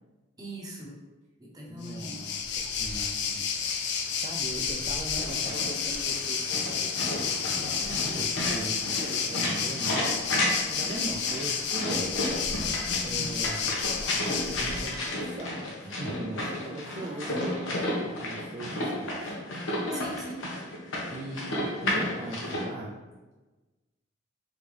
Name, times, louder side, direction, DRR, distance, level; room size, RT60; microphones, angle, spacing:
voice 1, 0.4-1.0 1.4-2.3 7.8-8.1 13.0-13.4 16.8-17.4 19.9-20.5, right 1 dB, 20° right, -2 dB, 0.8 m, -41 dB
voice 2, 1.7-7.1 8.2-10.2 10.7-12.7 13.0-13.7 14.1-19.3 19.8-20.0 21.1-23.0, right 2 dB, 35° right, -1 dB, 0.3 m, -40 dB
Waves surf, 1.8-15.1, left 6 dB, 60° left, 0.5 m, -31 dB
sound 1, 5.2-22.6, left 1 dB, 85° left, 1.0 m, -32 dB
4.0 x 3.5 x 3.2 m, 1.2 s
head